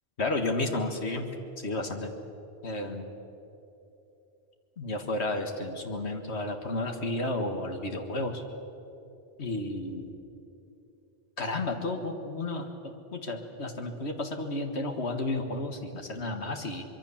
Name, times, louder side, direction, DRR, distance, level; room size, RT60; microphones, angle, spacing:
voice 1, 0.2-1.3 1.6-2.1 2.6-3.1 4.8-8.4 9.4-10.1 11.4-16.8, left 2 dB, 75° left, 4 dB, 2.0 m, -32 dB
24.5 x 23.0 x 7.2 m, 3.0 s
omnidirectional pair, 1.1 m